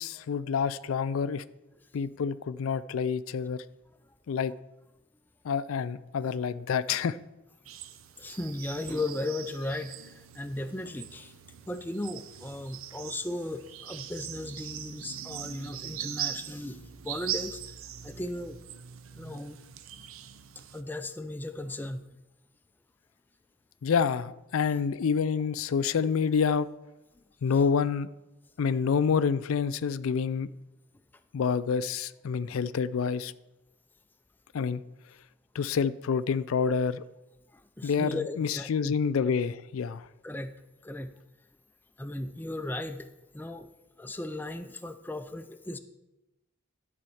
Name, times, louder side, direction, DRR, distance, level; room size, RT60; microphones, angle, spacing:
voice 1, 0.0-1.4 1.9-3.6 4.3-4.5 5.4-7.2 23.8-26.7 27.4-28.1 28.6-30.5 31.3-33.3 34.5-34.8 35.5-37.0 37.8-40.1, left 6 dB, 80° left, 16 dB, 0.4 m, -28 dB
sound 1, 7.7-20.8, right 10 dB, 80° right, 0.6 m, -41 dB
voice 2, 8.2-11.3 11.7-17.8 18.0-18.6 19.2-19.6 20.7-22.1 37.5-38.9 40.2-40.5 40.8-41.2 42.0-43.1 43.3-43.7 44.0-45.8, left 2 dB, 10° left, 8 dB, 0.4 m, -36 dB
12.0 x 4.3 x 7.1 m, 0.99 s
head